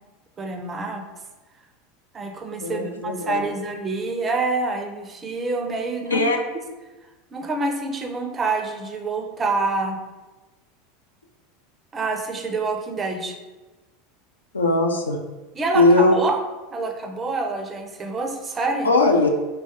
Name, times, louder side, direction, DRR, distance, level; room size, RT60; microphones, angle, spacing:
voice 1, 0.4-1.0 2.1-6.2 7.3-10.0 11.9-13.4 15.6-16.4 16.7-18.9, right 3 dB, 25° right, 4 dB, 0.4 m, -27 dB
voice 2, 2.6-3.5 6.1-6.4 14.5-15.2 15.7-16.1 18.8-19.3, left 2 dB, 80° left, 2 dB, 0.3 m, -19 dB
3.1 x 2.2 x 2.7 m, 1.2 s
figure-of-eight pair, 80°, 0 cm